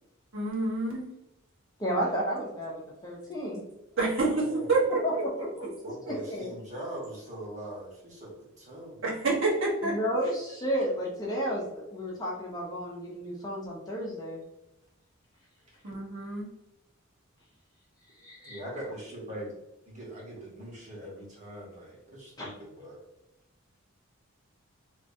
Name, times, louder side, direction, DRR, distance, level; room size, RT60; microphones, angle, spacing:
voice 1, 0.3-1.1 4.0-5.2 9.0-10.0 15.8-16.5, right 3 dB, 70° right, -5 dB, 1.2 m, -28 dB
voice 2, 1.8-3.6 5.0-5.3 5.6-5.7 6.1-6.5 9.8-14.4 18.2-18.6 22.4-22.5, equal, 20° left, -4 dB, 0.7 m, -32 dB
voice 3, 4.2-5.0 5.8-9.0 15.7-15.8 18.4-19.5 19.8-23.0, right 1 dB, 35° right, -4 dB, 1.2 m, -42 dB
3.3 x 2.9 x 2.6 m, 0.90 s
head